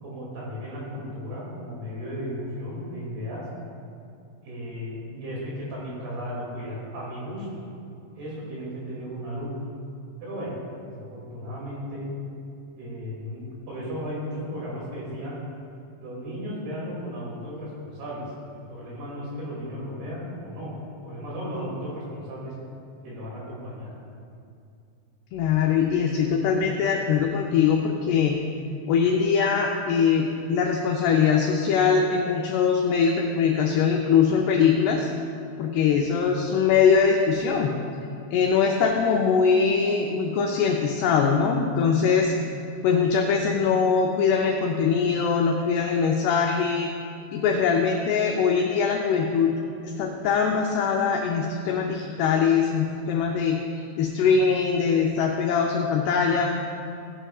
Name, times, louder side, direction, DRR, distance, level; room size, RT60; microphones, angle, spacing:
voice 1, 0.0-3.5 4.4-7.7 8.1-9.5 10.2-10.5 10.9-12.1 12.8-15.4 16.0-18.2 18.5-20.7 21.0-22.5 23.0-23.9, equal, 60° right, -5 dB, 4.2 m, -35 dB
voice 2, 25.3-28.4 28.9-35.1 35.6-37.7 38.3-42.3 42.8-46.9 47.3-49.5 49.8-56.6, left 6 dB, 90° left, 1 dB, 2.3 m, -22 dB
16.5 x 10.0 x 2.4 m, 2.5 s
omnidirectional pair, 5.5 m